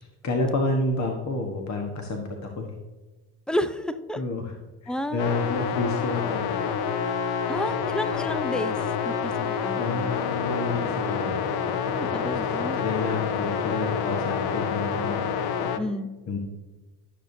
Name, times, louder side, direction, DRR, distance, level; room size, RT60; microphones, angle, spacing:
voice 1, 0.0-2.7 4.2-4.5 4.8-6.7 9.8-11.5 12.0-15.2 16.3-16.4, left 2 dB, 35° left, 3 dB, 1.3 m, -30 dB
voice 2, 3.5-4.2 4.9-5.2 7.5-8.8 9.0-10.1 11.9-12.8 15.8-16.1, equal, ahead, 12 dB, 0.6 m, -31 dB
sound 1, 5.2-15.8, left 7 dB, 55° left, 0.8 m, -28 dB
13.5 x 6.5 x 2.7 m, 1.2 s
hypercardioid pair, 70°, 46 cm